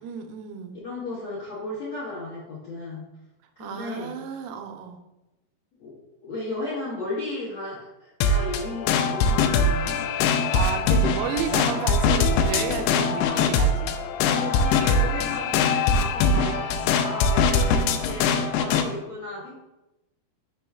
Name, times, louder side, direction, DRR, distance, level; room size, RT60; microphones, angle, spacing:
voice 1, 0.0-0.8 3.6-5.0 10.5-14.0, right 7 dB, 80° right, 6 dB, 2.4 m, -32 dB
voice 2, 0.8-3.0 3.6-4.1 5.8-5.9 6.2-10.0 12.0-12.1 14.3-19.6, left 2 dB, 60° left, -8 dB, 1.7 m, -34 dB
sound 1, 8.2-18.9, left 4 dB, 85° left, 2.5 m, -22 dB
6.0 x 5.3 x 3.4 m, 0.97 s
omnidirectional pair, 4.7 m